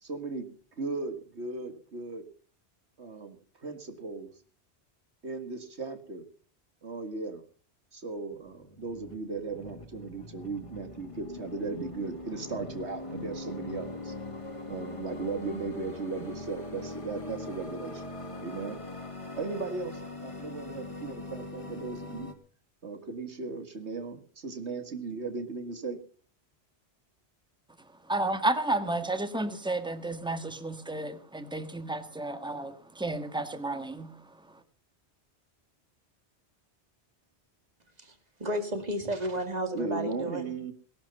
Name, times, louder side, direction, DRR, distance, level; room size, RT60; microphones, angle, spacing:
voice 1, 0.0-2.2 3.0-4.3 5.2-6.2 6.8-7.4 7.9-14.1 14.7-18.1 18.4-18.8 19.4-22.3 22.8-26.0 39.7-40.7, right 4 dB, 80° right, 2.3 m, -37 dB
sound 1, 8.3-22.3, left 2 dB, 30° left, 2.0 m, -42 dB
voice 2, 28.0-34.6, right 2 dB, 5° right, 1.4 m, -32 dB
voice 3, 38.4-40.5, right 1 dB, 35° right, 2.5 m, -32 dB
18.5 x 12.0 x 5.5 m
omnidirectional pair, 1.1 m